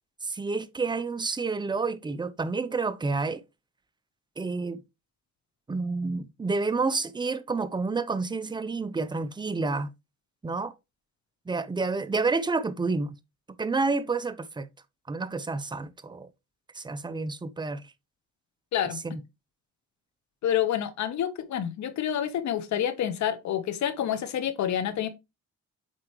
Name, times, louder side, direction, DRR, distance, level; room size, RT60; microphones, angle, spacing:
voice 1, 0.2-3.4 4.4-4.8 5.7-9.9 10.4-10.7 11.5-13.2 13.6-14.7 15.1-16.3 16.8-17.8 19.0-19.2, right 3 dB, 15° right, 0.6 m, -29 dB
voice 2, 20.4-25.1, left 10 dB, 70° left, 1.0 m, -28 dB
7.6 x 4.5 x 3.0 m
cardioid pair, 90°, 30 cm